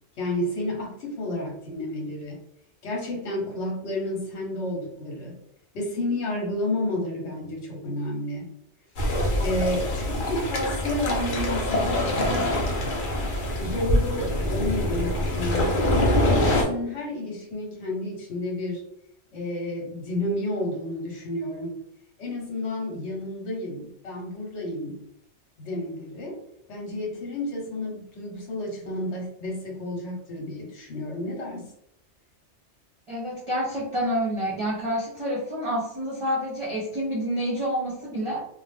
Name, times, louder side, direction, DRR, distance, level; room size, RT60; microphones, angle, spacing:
voice 1, 0.2-2.4 2.8-5.3 5.7-8.5 9.4-12.7 13.6-18.8 19.3-21.8 22.2-25.0 25.6-26.4 26.7-31.7, left 1 dB, 75° left, 0 dB, 1.1 m, -31 dB
sound 1, 9.0-16.6, left 1 dB, 55° left, 0.7 m, -24 dB
voice 2, 33.1-38.4, equal, 35° right, -5 dB, 0.6 m, -28 dB
2.4 x 2.1 x 3.3 m, 0.74 s
omnidirectional pair, 1.2 m